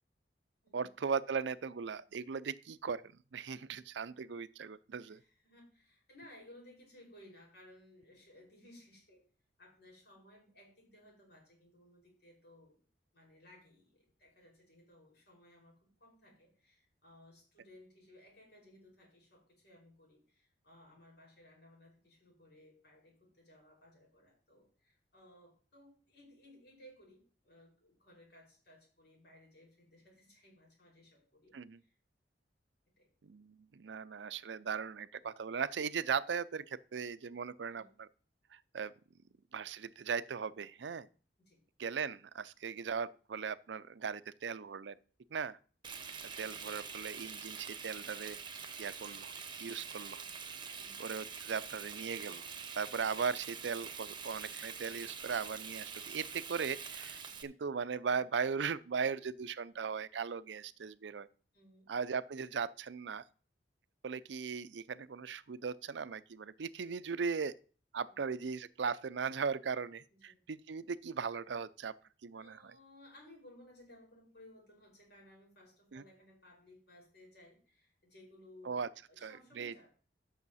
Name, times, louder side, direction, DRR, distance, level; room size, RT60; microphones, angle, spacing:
voice 1, 0.7-3.0 3.3-5.2 31.5-31.8 33.2-38.1 38.5-38.9 39.5-41.1 41.8-44.9 45.3-45.6 46.4-48.4 48.8-49.3 49.6-50.2 51.0-52.4 52.8-61.3 61.9-63.2 64.0-67.6 67.9-71.9 72.2-72.7 75.9-76.0 78.6-78.9 79.2-79.9, right 6 dB, 85° right, 0.5 m, -38 dB
voice 2, 5.0-9.2 9.6-12.8 13.1-32.0 33.0-33.1 37.7-37.9 41.4-41.6 50.8-51.0 58.0-58.4 61.5-61.9 68.1-68.5 70.1-70.4 72.4-79.9, left 1 dB, 65° left, 6.0 m, -60 dB
Frying (food), 45.8-57.4, right 6 dB, 30° right, 1.0 m, -45 dB
13.5 x 6.4 x 4.2 m
head